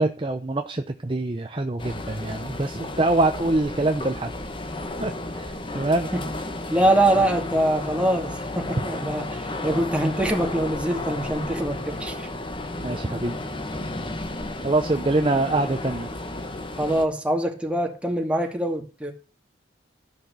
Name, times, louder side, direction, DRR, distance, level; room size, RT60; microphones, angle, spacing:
voice 1, 0.0-4.3 5.0-6.1 12.8-13.4 14.6-16.1, right 2 dB, 30° right, 0.8 m, -24 dB
sound 1, 1.8-17.0, left 2 dB, 30° left, 1.4 m, -33 dB
voice 2, 6.7-12.3 16.8-19.1, right 1 dB, 5° right, 2.5 m, -24 dB
13.5 x 6.0 x 8.2 m
head